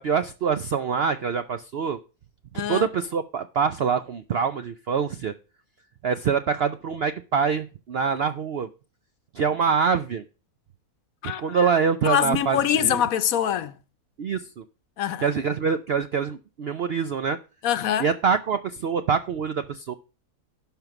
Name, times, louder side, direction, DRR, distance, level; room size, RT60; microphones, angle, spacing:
voice 1, 0.0-2.0 2.7-5.3 6.0-8.7 9.3-10.2 11.4-13.0 14.2-14.6 15.2-17.4 18.0-19.9, right 6 dB, 65° right, 0.6 m, -25 dB
voice 2, 2.5-2.9 11.2-11.7 12.0-13.8 15.0-15.3 17.6-18.1, left 10 dB, 65° left, 1.1 m, -24 dB
11.5 x 5.4 x 5.9 m
omnidirectional pair, 1.7 m